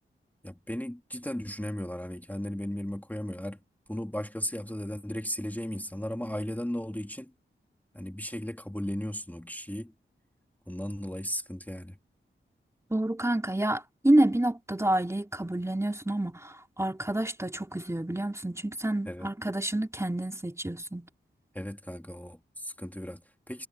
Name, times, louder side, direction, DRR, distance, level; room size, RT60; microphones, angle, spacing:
voice 1, 0.4-3.6 3.9-7.3 7.9-9.9 10.7-12.0 19.1-19.3 21.5-23.7, equal, 10° left, 2.8 m, -36 dB
voice 2, 12.9-21.1, right 1 dB, 15° right, 3.1 m, -28 dB
cardioid pair, 55°, 21 cm